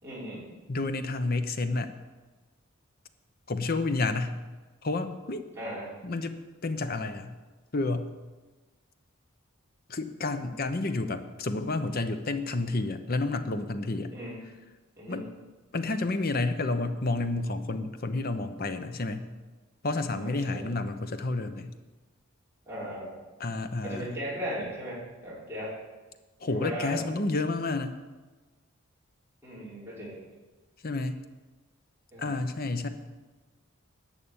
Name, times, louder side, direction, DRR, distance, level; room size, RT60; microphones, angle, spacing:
voice 1, 0.0-0.5 5.6-5.9 14.1-14.4 14.9-15.3 20.2-20.7 22.6-23.1 23.8-25.8 26.5-27.0 29.4-30.2 32.1-32.5, equal, 10° right, -8 dB, 4.8 m, -37 dB
voice 2, 0.7-1.9 3.5-4.4 4.8-5.5 6.0-6.4 6.6-7.4 7.7-8.1 9.9-14.1 15.1-15.2 15.7-19.3 19.8-21.7 23.4-24.1 26.4-27.9 30.8-31.2 32.2-32.9, left 2 dB, 45° left, 9 dB, 0.8 m, -30 dB
11.0 x 6.9 x 8.8 m, 1.3 s
head